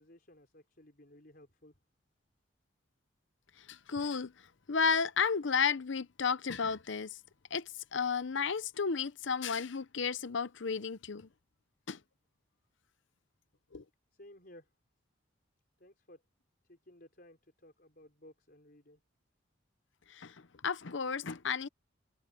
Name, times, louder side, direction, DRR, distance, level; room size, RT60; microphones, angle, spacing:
voice 1, 0.0-1.8 14.1-14.7 15.8-16.2 16.7-19.0, left 1 dB, 45° left, 4.9 m, -57 dB
voice 2, 3.7-4.3 4.7-7.1 7.5-11.3 11.9-12.0 13.7-13.8 20.1-20.3 20.6-21.7, left 5 dB, 65° left, 0.7 m, -32 dB
head